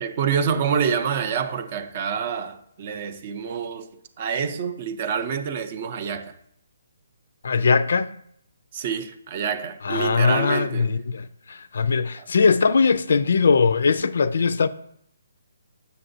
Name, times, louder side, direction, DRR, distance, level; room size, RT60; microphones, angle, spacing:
voice 1, 0.0-3.9 4.2-6.3 8.7-10.9 12.2-12.3, right 7 dB, 40° right, 0.5 m, -27 dB
voice 2, 7.4-8.1 9.8-14.7, left 5 dB, 65° left, 0.3 m, -20 dB
6.8 x 6.6 x 2.6 m
hypercardioid pair, 150°, 0 cm